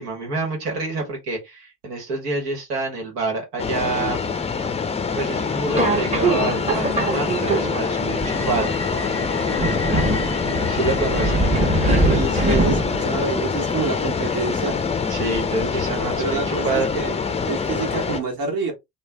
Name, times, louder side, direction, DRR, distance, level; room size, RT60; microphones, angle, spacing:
voice 1, 0.0-4.2 5.2-8.7 10.7-11.4 15.1-16.9, right 3 dB, 75° right, 1.4 m, -27 dB
sound 1, 3.6-18.2, left 5 dB, 15° left, 0.5 m, -25 dB
Subway metro underground, 5.7-13.2, right 2 dB, 15° right, 1.0 m, -23 dB
voice 2, 12.0-14.8 16.2-18.7, right 4 dB, 55° right, 1.5 m, -27 dB
3.2 x 2.2 x 3.3 m
figure-of-eight pair, 55°, 47 cm